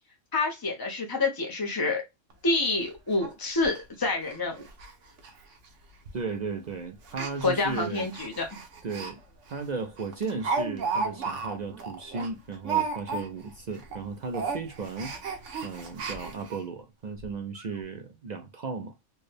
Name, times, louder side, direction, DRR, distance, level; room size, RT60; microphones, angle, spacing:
voice 1, 0.3-2.0 2.4-4.7 7.4-8.5, left 3 dB, 25° left, 0.5 m, -27 dB
Speech, 2.3-2.4 2.7-2.8 3.2-3.3 3.6-3.8 4.2-4.4 4.6-4.9 5.2-5.3 6.1-6.3 7.0-9.1 9.5-9.6 10.0-13.5 13.8-14.0 14.3-16.6 17.2-17.3 17.6-17.7, right 5 dB, 75° right, 1.2 m, -33 dB
voice 2, 6.1-8.1 8.8-9.2 9.5-15.1 15.6-18.9, right 4 dB, 55° right, 0.5 m, -35 dB
4.5 x 2.2 x 3.2 m
omnidirectional pair, 1.3 m